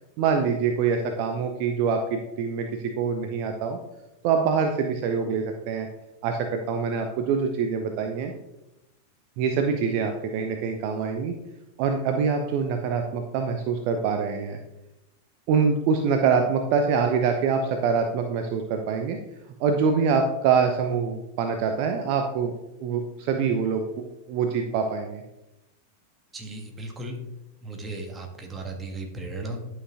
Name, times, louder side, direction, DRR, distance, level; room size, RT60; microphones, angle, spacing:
voice 1, 0.2-2.7 3.0-3.8 4.2-5.9 6.2-8.3 9.4-11.3 11.8-14.6 15.5-19.2 19.6-22.5 22.8-23.8 24.3-25.2, right 6 dB, 45° right, 5 dB, 0.7 m, -25 dB
voice 2, 26.3-27.2 27.6-29.6, right 2 dB, 15° right, 3 dB, 1.5 m, -36 dB
11.0 x 5.9 x 2.9 m, 0.94 s
figure-of-eight pair, 90°, 0 cm